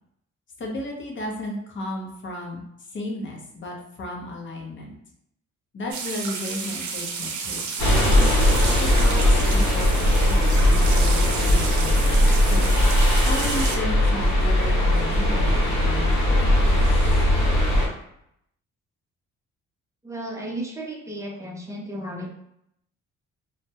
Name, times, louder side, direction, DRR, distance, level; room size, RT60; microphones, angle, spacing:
voice 1, 0.6-2.6 2.9-4.9 5.7-7.9 8.8-12.7 13.3-16.8, left 1 dB, 40° left, -1 dB, 0.7 m, -34 dB
sound 1, 5.9-13.8, right 5 dB, 75° right, 0.5 m, -32 dB
sound 2, 7.8-17.9, left 1 dB, 70° left, 1.0 m, -19 dB
voice 2, 20.0-22.4, right 1 dB, 10° right, -1 dB, 0.6 m, -34 dB
2.2 x 2.1 x 2.8 m, 0.75 s
cardioid pair, 90°, 30 cm